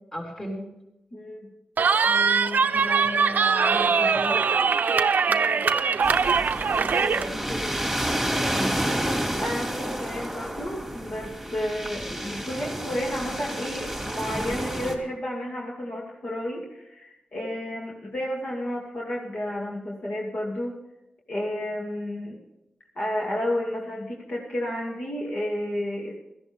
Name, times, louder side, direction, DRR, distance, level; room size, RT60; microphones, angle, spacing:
voice 1, 0.1-0.6 1.9-4.4 6.8-8.8, equal, 20° left, 0 dB, 3.9 m, -35 dB
voice 2, 1.1-1.5 5.3-5.6 9.4-20.8 21.3-22.4 23.0-26.1, left 1 dB, 45° left, -3 dB, 2.6 m, -31 dB
Cheering, 1.8-7.3, right 5 dB, 75° right, 0.7 m, -22 dB
sound 1, 6.0-15.0, equal, ahead, 2.4 m, -30 dB
17.5 x 14.0 x 3.6 m, 0.90 s
wide cardioid pair, 145°, 3 cm